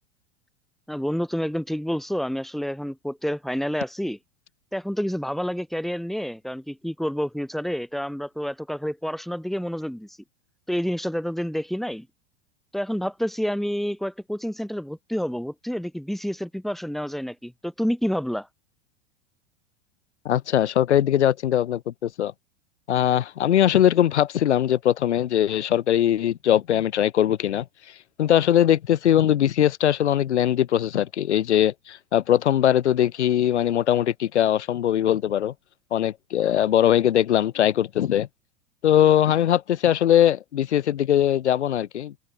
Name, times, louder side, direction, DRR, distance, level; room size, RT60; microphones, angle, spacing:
voice 1, 0.9-4.2 4.7-10.2 10.7-12.1 12.7-18.5, equal, ahead, 6.1 m, -28 dB
voice 2, 20.2-22.3 22.9-27.6 28.2-35.5 35.9-38.3 38.8-42.2, left 11 dB, 70° left, 2.3 m, -21 dB
open air
figure-of-eight pair, 90°, 36 cm